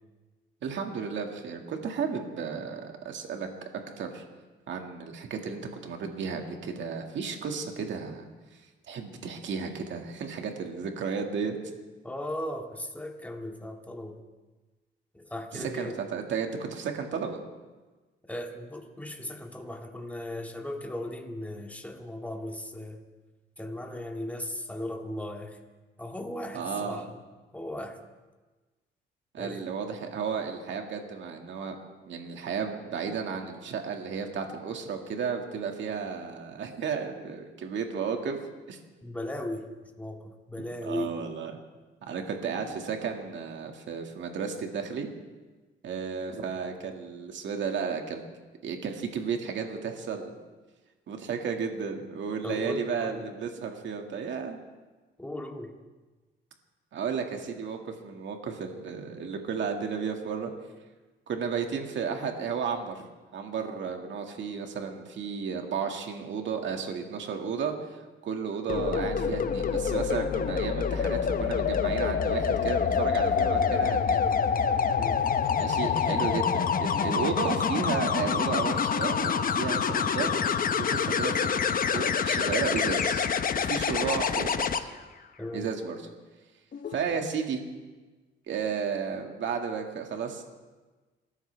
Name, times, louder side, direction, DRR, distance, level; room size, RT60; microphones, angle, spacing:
voice 1, 0.6-3.5 4.0-4.2 4.7-8.2 8.9-11.6 15.5-17.4 26.5-27.0 29.3-31.8 32.0-38.4 38.7-38.8 40.6-41.5 42.0-45.1 45.8-48.2 48.6-50.3 51.1-54.6 56.9-60.5 61.3-63.1 63.3-74.3 75.6-80.4 80.8-81.7 81.9-83.3 83.6-84.9 85.5-86.1 86.9-87.6 88.5-90.4, right 6 dB, 70° right, 3 dB, 2.1 m, -33 dB
voice 2, 12.0-14.2 15.1-16.0 18.3-23.0 23.6-25.6 26.0-27.2 27.5-28.0 29.4-29.7 39.0-39.7 40.0-41.2 52.4-53.3 55.2-55.8 75.0-75.3 85.4-85.7, left 1 dB, 5° left, 2 dB, 2.1 m, -37 dB
sound 1, 68.7-84.8 86.7-87.0, left 6 dB, 45° left, 0.9 m, -26 dB
28.5 x 13.5 x 3.5 m, 1.3 s
cardioid pair, 90°, 20 cm